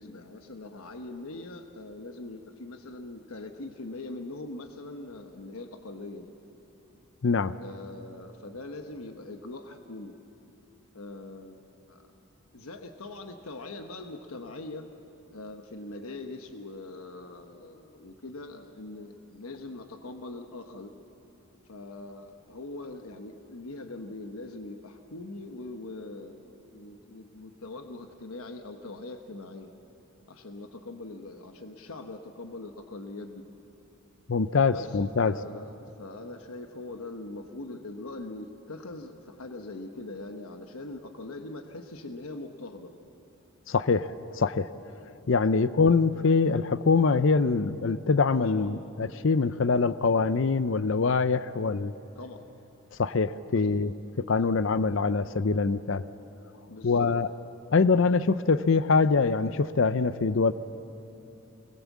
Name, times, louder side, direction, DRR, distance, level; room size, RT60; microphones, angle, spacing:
voice 1, 0.0-6.3 7.6-10.1 10.9-12.1 12.5-14.9 15.3-21.0 21.7-26.4 26.7-29.7 30.3-33.5 34.6-42.9 45.5-45.6 48.4-48.7 52.2-52.4 53.5-53.7 56.7-57.1, left 2 dB, 75° left, 6 dB, 1.1 m, -42 dB
voice 2, 7.2-7.6 34.3-35.3 43.7-44.7 45.3-51.9 53.0-56.0 56.8-57.3 57.7-60.5, left 4 dB, 60° left, 14 dB, 0.5 m, -24 dB
25.5 x 20.5 x 7.3 m, 2.8 s
head